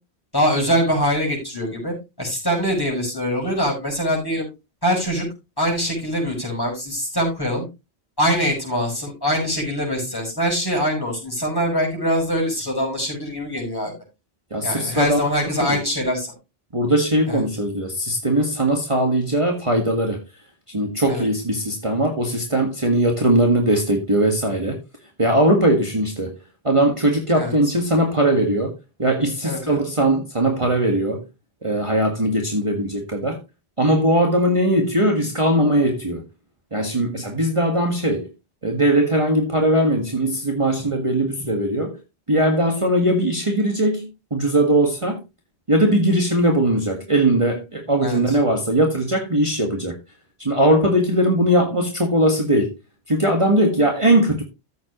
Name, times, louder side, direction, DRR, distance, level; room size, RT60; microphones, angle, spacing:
voice 1, 0.3-4.5 4.8-5.2 5.6-7.7 8.2-13.9 14.6-16.3 17.3-17.4 21.1-21.3 27.3-27.7 29.4-29.8 48.0-48.4, equal, 20° left, 5.9 m, -23 dB
voice 2, 14.5-15.2 15.6-15.8 16.7-20.2 20.7-24.8 25.2-26.3 26.6-28.7 29.0-31.2 31.6-33.4 33.8-36.2 36.7-38.3 38.6-42.0 42.3-45.2 45.7-50.0 50.4-52.7 53.1-54.4, right 1 dB, 30° right, 1.8 m, -20 dB
14.0 x 7.6 x 3.1 m
omnidirectional pair, 1.1 m